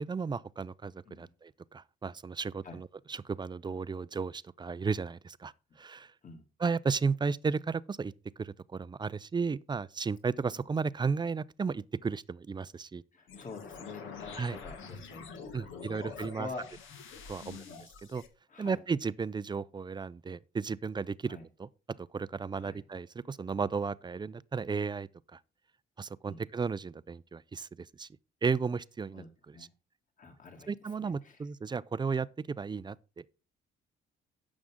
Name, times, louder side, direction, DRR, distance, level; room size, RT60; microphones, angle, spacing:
voice 1, 0.0-5.5 5.8-6.1 6.6-8.1 8.4-13.0 14.4-14.6 15.5-16.5 17.3-17.6 18.1-18.2 18.6-21.7 22.0-25.4 26.0-28.1 28.4-29.5 30.7-33.3, right 5 dB, 20° right, 0.4 m, -34 dB
voice 2, 13.1-16.7 17.4-17.9 18.5-18.8 21.3-21.5 22.6-22.8 26.2-26.4 29.1-29.7 30.2-31.4, left 4 dB, 40° left, 2.4 m, -47 dB
sound 1, 13.3-18.3, left 5 dB, 80° left, 1.7 m, -47 dB
11.5 x 7.2 x 3.7 m
cardioid pair, 90°, 20 cm